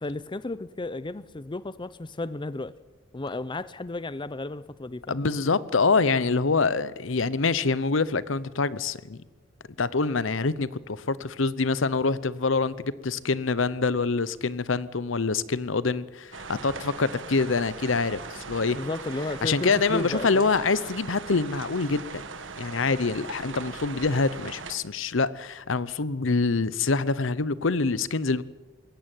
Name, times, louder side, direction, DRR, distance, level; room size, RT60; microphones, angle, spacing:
voice 1, 0.0-2.7 3.1-5.2 18.7-20.5, left 2 dB, 25° left, 0.6 m, -33 dB
voice 2, 5.1-9.2 9.8-18.8 19.4-22.0 22.6-28.4, left 4 dB, 75° left, 0.8 m, -25 dB
sound 1, 16.3-24.8, right 4 dB, 70° right, 1.8 m, -40 dB
21.0 x 17.0 x 9.1 m
head